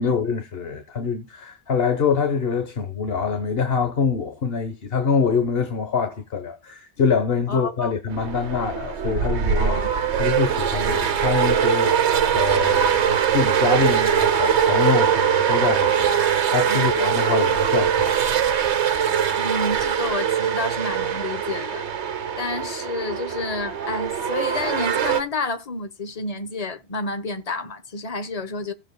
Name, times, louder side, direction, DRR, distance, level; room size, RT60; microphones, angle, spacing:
voice 1, 0.0-9.8 10.2-18.3, left 5 dB, 60° left, 1.3 m, -25 dB
voice 2, 7.5-7.9 9.6-9.9 16.7-17.1 19.4-21.9 22.4-28.7, left 3 dB, 35° left, 1.1 m, -30 dB
sound 1, 8.1-25.2, right 8 dB, 80° right, 1.2 m, -22 dB
16.5 x 7.4 x 2.2 m
omnidirectional pair, 1.1 m